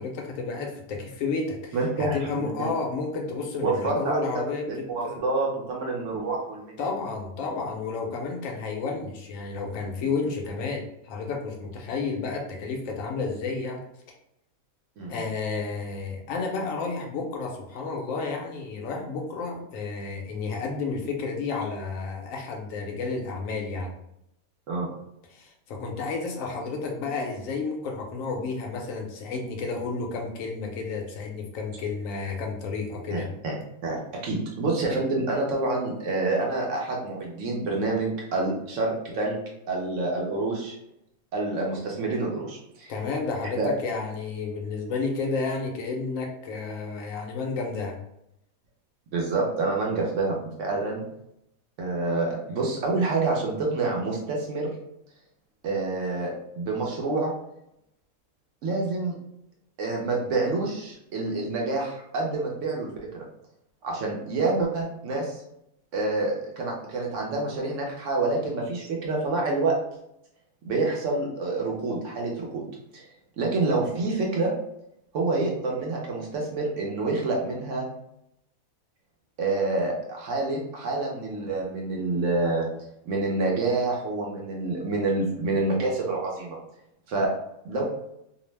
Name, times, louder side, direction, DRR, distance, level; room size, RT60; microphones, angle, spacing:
voice 1, 0.0-5.2 6.8-13.8 15.1-23.9 25.3-33.3 42.9-48.0, left 4 dB, 70° left, 1 dB, 0.9 m, -31 dB
voice 2, 1.7-2.7 3.6-6.7 15.0-15.2 24.7-24.9 33.1-33.6 33.8-39.4 39.7-40.8 41.3-42.9 43.6-43.7 49.1-51.0 51.8-54.7 55.6-57.3 58.6-59.1 59.8-63.2 63.8-65.4 65.9-69.8 70.6-72.6 72.9-73.0 73.4-74.5 75.1-77.9 79.4-82.7 83.1-86.6 87.1-87.3 87.6-87.8, right 3 dB, 65° right, -1 dB, 0.9 m, -27 dB
2.7 x 2.0 x 3.1 m, 0.80 s
omnidirectional pair, 1.5 m